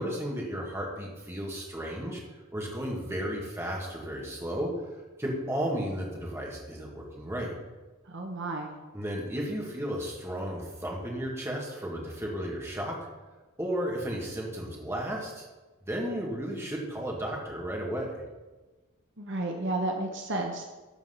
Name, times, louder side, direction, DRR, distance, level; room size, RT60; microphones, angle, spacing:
voice 1, 0.0-2.2 2.5-4.7 5.2-7.5 8.9-12.9 13.6-15.5 15.9-18.2, equal, 10° right, -2 dB, 1.8 m, -33 dB
voice 2, 8.1-8.7 19.2-20.6, right 2 dB, 55° right, 2 dB, 1.0 m, -32 dB
13.5 x 4.5 x 5.6 m, 1.2 s
head